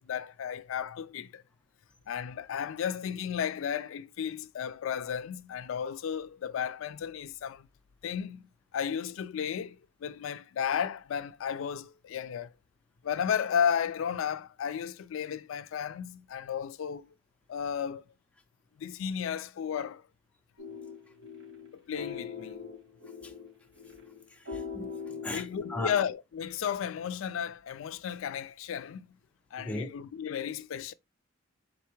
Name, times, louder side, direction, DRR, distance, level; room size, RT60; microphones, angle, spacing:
voice 1, 0.0-1.4 2.1-7.7 8.0-12.5 13.0-17.1 17.5-18.0 18.8-20.0 21.7-22.6 25.3-29.2 29.5-30.9, left 8 dB, 80° left, 0.3 m, -33 dB
sound 1, 20.6-26.1, left 6 dB, 85° right, 2.8 m, -42 dB
voice 2, 24.3-25.9 29.6-29.9, left 1 dB, 5° left, 0.4 m, -38 dB
4.0 x 3.3 x 3.0 m
head